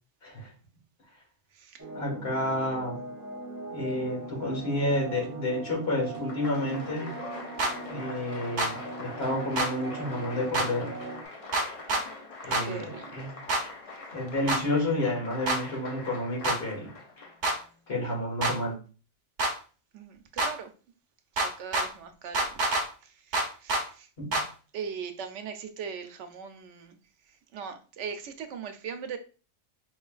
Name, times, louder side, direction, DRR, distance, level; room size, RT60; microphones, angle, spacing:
sound 1, 1.8-11.3, right 3 dB, 25° right, 0.4 m, -40 dB
voice 1, 1.9-3.0 3.7-7.1 7.9-10.9 12.4-13.3 14.1-16.9 17.9-18.8 24.2-24.4, left 1 dB, 60° left, 1.8 m, -30 dB
Applause, 6.0-17.9, left 3 dB, 40° left, 0.5 m, -43 dB
sound 2, 7.6-7.7 8.6-8.7 9.6-9.7 10.5-10.7 11.5-12.0 12.5-12.6 13.5-13.6 14.5-14.6 15.5-15.6 16.4-16.6 17.4-17.6 18.4-18.5 19.4-19.5 20.4-20.5 21.4-21.9 22.3-22.8 23.3-23.8 24.3-24.5, right 2 dB, 45° right, 0.8 m, -26 dB
voice 2, 12.6-13.2 19.9-20.7 21.4-22.5 23.0-24.1 24.7-27.0 27.5-29.2, right 6 dB, 85° right, 0.9 m, -40 dB
4.3 x 3.1 x 2.3 m
omnidirectional pair, 1.2 m